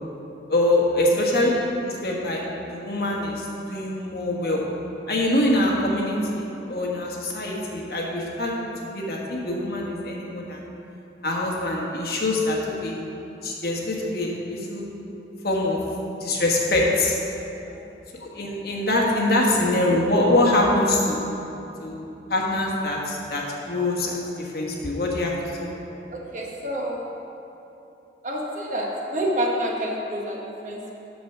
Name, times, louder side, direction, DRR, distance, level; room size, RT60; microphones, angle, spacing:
voice 1, 0.5-1.5 1.8-2.4 2.7-4.6 5.1-8.5 8.8-10.6 11.2-13.0 13.4-14.9 15.4-15.8 16.2-17.2 18.2-21.2 21.8-25.3 25.6-26.0, left 1 dB, 55° left, -2 dB, 1.3 m, -24 dB
voice 2, 26.1-27.2 28.2-30.9, right 1 dB, 45° right, -1 dB, 1.1 m, -28 dB
7.8 x 6.6 x 5.9 m, 2.9 s
head